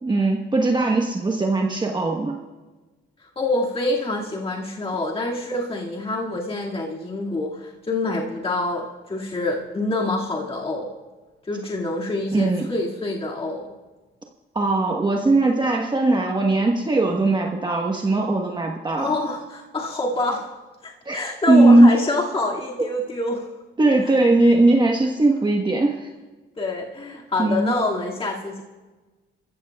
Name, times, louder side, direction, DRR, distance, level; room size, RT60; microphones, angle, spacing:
voice 1, 0.0-2.4 12.3-12.7 14.5-19.1 21.1-21.9 23.8-26.1 27.4-27.7, right 2 dB, 20° right, 1 dB, 1.2 m, -19 dB
voice 2, 3.2-10.9 11.4-13.7 19.0-20.5 20.8-23.5 24.0-24.1 26.6-28.6, left 2 dB, 30° left, -3 dB, 2.2 m, -26 dB
26.0 x 15.0 x 2.4 m, 1.2 s
cardioid pair, 90°, 20 cm